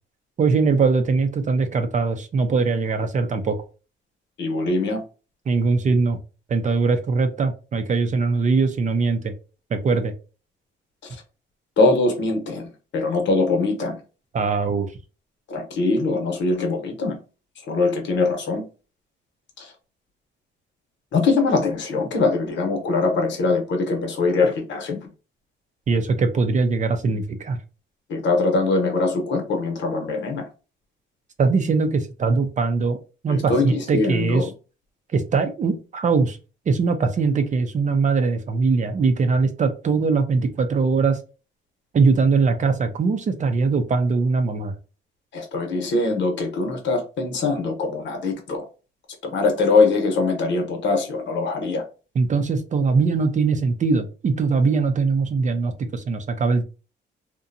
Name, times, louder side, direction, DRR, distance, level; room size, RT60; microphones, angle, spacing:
voice 1, 0.4-3.6 5.5-6.2 6.5-9.3 9.7-10.1 14.3-14.9 25.9-27.6 31.4-33.0 33.2-34.5 35.1-36.4 36.7-41.2 41.9-44.7 52.2-56.6, right 4 dB, 40° right, 8 dB, 0.5 m, -21 dB
voice 2, 4.4-5.0 11.1-11.2 11.8-14.0 15.5-17.2 17.7-18.6 19.6-19.7 21.1-25.1 28.1-30.5 33.3-34.5 45.3-48.6 49.2-51.8, left 3 dB, 70° left, 3 dB, 0.9 m, -22 dB
2.7 x 2.2 x 2.5 m, 0.33 s
cardioid pair, 90°, 20 cm